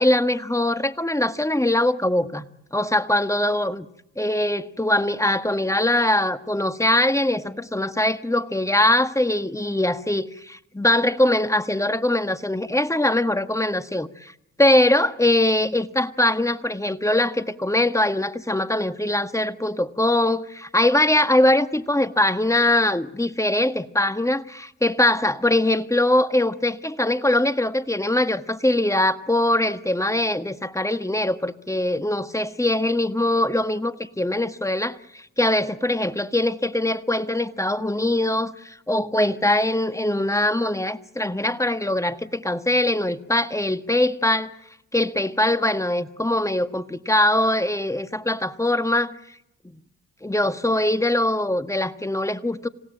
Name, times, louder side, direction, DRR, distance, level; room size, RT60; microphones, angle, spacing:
voice 1, 0.0-3.8 4.2-14.3 14.6-44.5 44.9-49.1 50.2-52.7, left 1 dB, 10° left, 1.6 m, -22 dB
27.0 x 17.0 x 9.0 m
hypercardioid pair, 45°, 34 cm